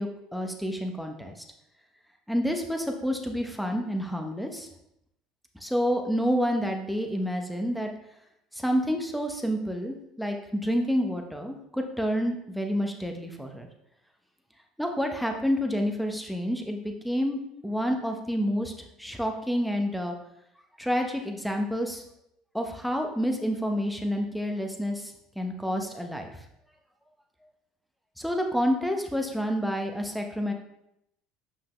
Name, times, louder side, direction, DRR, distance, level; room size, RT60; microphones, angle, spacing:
voice 1, 0.0-1.3 2.3-4.7 5.6-7.9 8.5-13.7 14.8-18.7 19.0-20.1 20.8-22.0 22.5-26.3 28.2-30.5, equal, ahead, 3 dB, 1.1 m, -29 dB
5.7 x 5.6 x 3.3 m, 0.80 s
hypercardioid pair, 80°, 0 cm